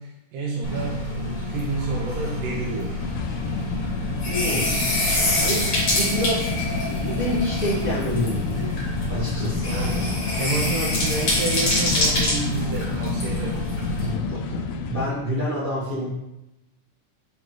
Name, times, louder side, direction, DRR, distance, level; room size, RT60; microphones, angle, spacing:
voice 1, 0.0-3.0 5.4-5.6 9.7-13.6, right 3 dB, 85° right, -4 dB, 2.4 m, -30 dB
sound 1, 0.6-14.1, left 1 dB, 40° left, 2.0 m, -26 dB
sound 2, 3.0-15.1, left 4 dB, 85° left, 1.5 m, -30 dB
voice 2, 4.2-8.8 9.1-10.0 14.0-16.1, equal, 60° right, -9 dB, 0.5 m, -29 dB
8.8 x 3.2 x 3.8 m, 0.92 s
omnidirectional pair, 3.7 m